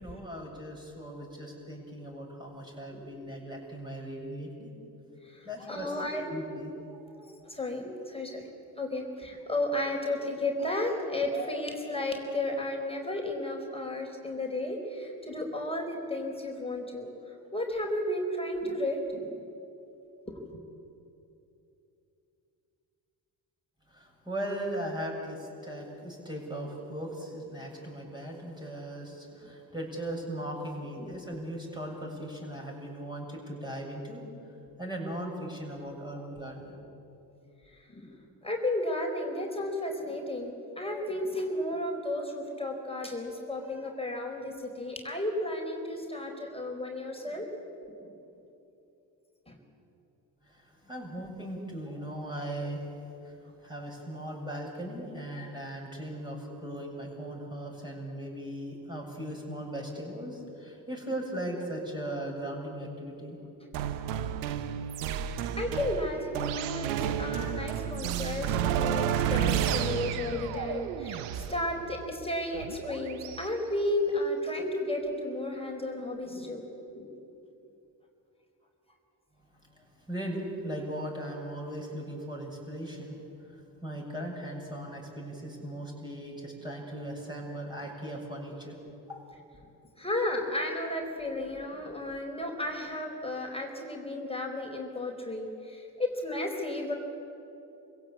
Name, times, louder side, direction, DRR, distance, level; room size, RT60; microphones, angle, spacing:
voice 1, 0.0-4.7 5.4-6.7 23.9-34.2 34.8-36.8 50.5-52.8 53.2-63.4 79.8-83.2 83.5-88.8 89.1-89.2, right 1 dB, 10° right, -1 dB, 7.8 m, -38 dB
voice 2, 5.2-6.2 7.1-8.4 8.8-17.1 17.5-19.3 20.3-20.4 31.0-31.1 36.4-36.5 37.9-38.1 38.4-47.5 48.0-48.1 49.5-49.6 65.6-66.9 67.2-76.6 76.9-77.1 90.0-96.9, left 1 dB, 10° left, 1 dB, 4.2 m, -33 dB
sound 1, 63.7-73.5, right 9 dB, 80° right, 1.1 m, -31 dB
25.5 x 16.5 x 8.5 m, 2.8 s
hypercardioid pair, 55°, 48 cm